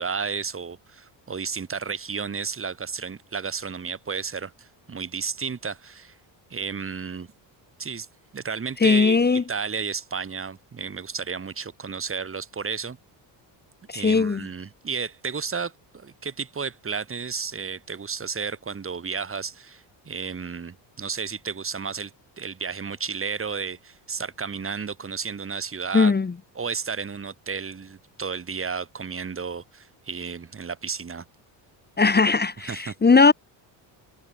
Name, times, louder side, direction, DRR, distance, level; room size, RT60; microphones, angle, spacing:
voice 1, 0.0-6.2 6.5-7.3 7.8-8.1 8.3-13.0 13.9-22.1 22.4-26.1 26.6-31.2 32.6-32.9, right 5 dB, 30° right, 2.5 m, -32 dB
voice 2, 8.8-9.4 13.9-14.4 25.9-26.3 32.0-33.3, left 4 dB, 20° left, 1.7 m, -19 dB
cardioid pair, 105°, 46 cm